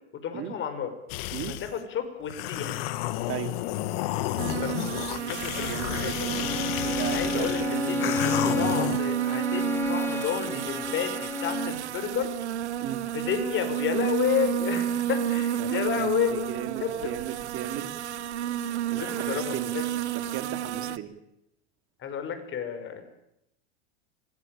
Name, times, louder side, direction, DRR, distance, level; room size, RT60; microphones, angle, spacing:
voice 1, 0.2-0.9 1.5-2.8 4.6-6.3 7.1-8.1 8.6-12.3 13.1-17.1 19.0-19.8 20.8-21.0 22.0-23.1, left 8 dB, 35° left, 8 dB, 5.3 m, -31 dB
sound 1, 1.1-1.7 2.3-9.0, left 15 dB, 60° left, 1.8 m, -31 dB
sound 2, 4.4-21.0, right 11 dB, 85° right, 1.1 m, -31 dB
voice 2, 5.5-6.4 6.8-8.6 10.5-10.7 12.8-13.0 15.6-15.7 16.0-17.9 18.9-19.7 20.1-21.1, right 11 dB, 40° right, 9 dB, 3.2 m, -36 dB
Bowed string instrument, 6.4-11.8, left 3 dB, 5° left, 1.1 m, -31 dB
25.5 x 18.0 x 9.1 m, 0.83 s
hypercardioid pair, 110°, 33 cm